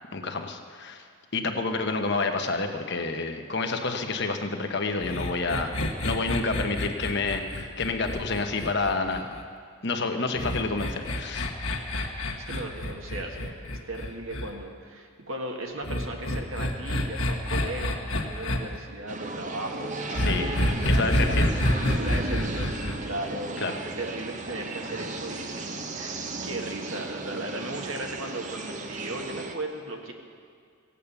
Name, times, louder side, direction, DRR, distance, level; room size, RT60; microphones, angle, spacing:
voice 1, 0.1-1.0 1.3-5.7 6.0-9.3 9.8-11.5 20.2-20.5 20.9-21.5 23.6-23.8, left 3 dB, 50° left, 5 dB, 1.0 m, -29 dB
sound 1, 5.0-9.4 10.4-14.5 15.8-18.6 20.1-23.0, left 1 dB, 70° left, 1.5 m, -28 dB
voice 2, 12.3-13.6 13.9-20.8 21.2-21.3 21.9-25.7 25.9-30.1, right 2 dB, 70° right, 2 dB, 1.7 m, -37 dB
sound 2, 19.1-29.5, right 2 dB, 35° right, 0.7 m, -35 dB
16.5 x 8.6 x 7.0 m, 2.3 s
head